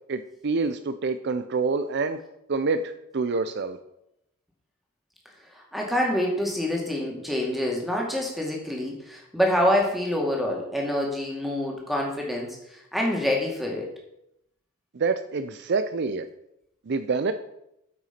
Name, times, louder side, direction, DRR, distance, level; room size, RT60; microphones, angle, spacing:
voice 1, 0.1-2.2 2.5-3.8 14.9-16.3 16.9-17.3, right 4 dB, 55° right, 10 dB, 0.5 m, -27 dB
voice 2, 5.5-13.9, left 1 dB, ahead, -1 dB, 2.2 m, -26 dB
9.0 x 5.9 x 5.8 m, 0.80 s
head